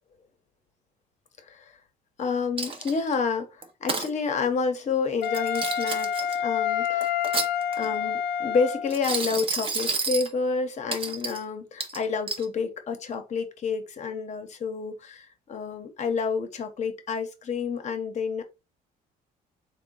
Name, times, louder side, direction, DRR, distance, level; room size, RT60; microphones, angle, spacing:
voice 1, 1.4-1.7 2.2-7.2 7.8-18.4, left 5 dB, 45° left, 0.9 m, -29 dB
Coin (dropping), 2.6-3.1 3.6-4.1 5.2-6.3 7.0-7.9 8.9-10.3 10.9-11.4 11.8-12.4, right 4 dB, 30° right, 0.7 m, -30 dB
Wind instrument woodwind instrument, 5.2-9.0, left 9 dB, 75° left, 0.4 m, -28 dB
3.6 x 2.2 x 3.7 m
cardioid pair, 110°, 17 cm